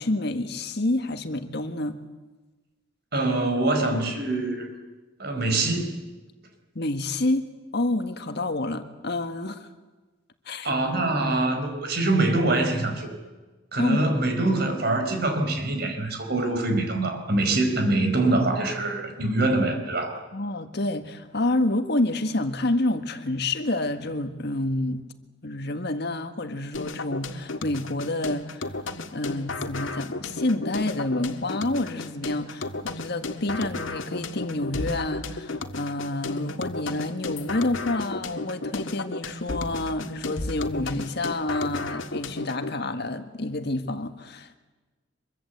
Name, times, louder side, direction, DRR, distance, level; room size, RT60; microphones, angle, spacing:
voice 1, 0.0-2.0 6.7-9.7 10.4-10.7 13.8-14.0 20.3-25.0 25.4-28.7 29.1-44.6, left 2 dB, 60° left, 8 dB, 1.7 m, -28 dB
voice 2, 3.1-4.7 5.2-6.0 10.6-13.2 13.7-20.2, right 2 dB, 55° right, 6 dB, 4.8 m, -24 dB
sound 1, 26.7-42.7, left 2 dB, 90° left, 1.7 m, -34 dB
24.5 x 23.5 x 8.1 m, 1.2 s
head